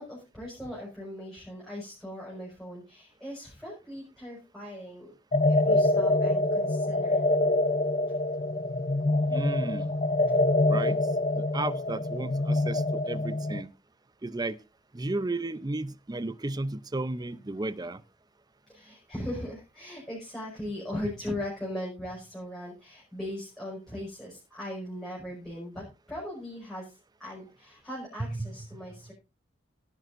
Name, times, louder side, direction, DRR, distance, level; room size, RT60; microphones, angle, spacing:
voice 1, 0.0-5.1 5.5-7.3 12.2-12.3 18.7-29.1, left 1 dB, 5° left, -6 dB, 5.6 m, -39 dB
sound 1, 5.3-13.6, left 2 dB, 35° left, 0.6 m, -25 dB
voice 2, 9.3-9.9 10.7-11.0 11.3-13.7 14.2-14.6 14.9-18.0 28.3-28.9, right 2 dB, 20° right, 16 dB, 0.6 m, -33 dB
17.5 x 11.0 x 2.6 m, 0.28 s
head